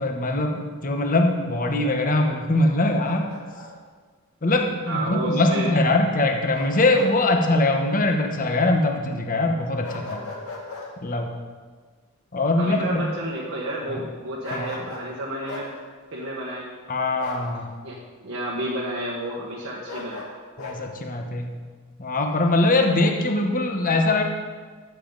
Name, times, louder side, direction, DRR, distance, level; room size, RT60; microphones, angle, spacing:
voice 1, 0.0-3.3 4.4-10.3 11.0-11.3 12.3-13.0 13.9-14.0 14.5-14.8 16.9-17.7 20.6-21.6 22.0-24.2, left 2 dB, 40° left, 3 dB, 1.1 m, -22 dB
Bark, 2.6-3.7 6.5-7.1 7.5-7.6 9.8-10.9 14.4-15.1 15.5-15.7 17.2-17.5 19.9-20.8, left 2 dB, 85° left, 2.2 m, -37 dB
voice 2, 4.8-5.7 12.5-15.7 16.1-16.7 17.8-20.2, right 1 dB, 75° right, -6 dB, 1.4 m, -31 dB
13.5 x 7.3 x 4.0 m, 1.5 s
head